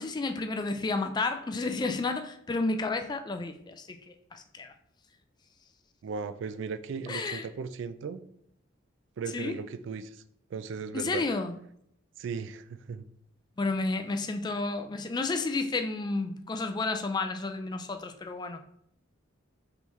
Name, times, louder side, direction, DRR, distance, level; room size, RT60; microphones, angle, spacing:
voice 1, 0.0-4.7 7.1-7.5 9.3-9.6 10.9-11.5 13.6-18.6, left 3 dB, 20° left, 0.3 m, -31 dB
voice 2, 6.0-8.2 9.2-10.2 10.5-11.2 12.2-13.0, right 5 dB, 65° right, 0.3 m, -37 dB
5.5 x 3.1 x 3.1 m
head